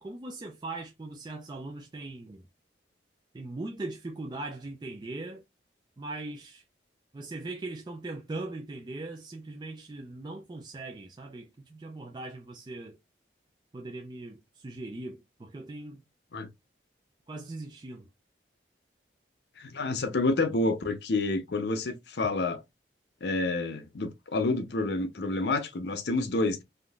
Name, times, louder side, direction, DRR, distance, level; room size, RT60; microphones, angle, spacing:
voice 1, 0.0-2.4 3.3-5.4 6.0-6.6 7.1-13.0 13.7-16.0 17.3-18.1, right 2 dB, 25° right, 0.4 m, -40 dB
voice 2, 19.6-22.6 23.2-26.6, left 2 dB, 70° left, 0.6 m, -29 dB
3.6 x 2.6 x 2.3 m
head